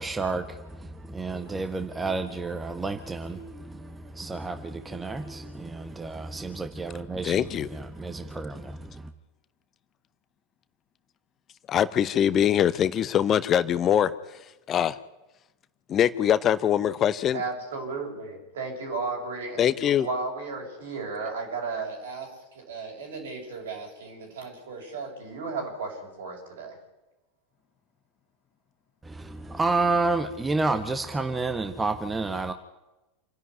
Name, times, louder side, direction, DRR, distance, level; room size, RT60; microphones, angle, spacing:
voice 1, 0.0-9.1 29.0-32.5, right 3 dB, 15° right, 9 dB, 1.3 m, -30 dB
voice 2, 7.2-7.7 11.7-14.1 14.7-15.0 15.9-17.4 19.6-20.1, left 10 dB, 30° left, 15 dB, 0.8 m, -23 dB
voice 3, 17.3-26.8, right 4 dB, 65° right, 2 dB, 7.1 m, -35 dB
28.0 x 11.0 x 9.6 m, 1.0 s
figure-of-eight pair, 85°, 0 cm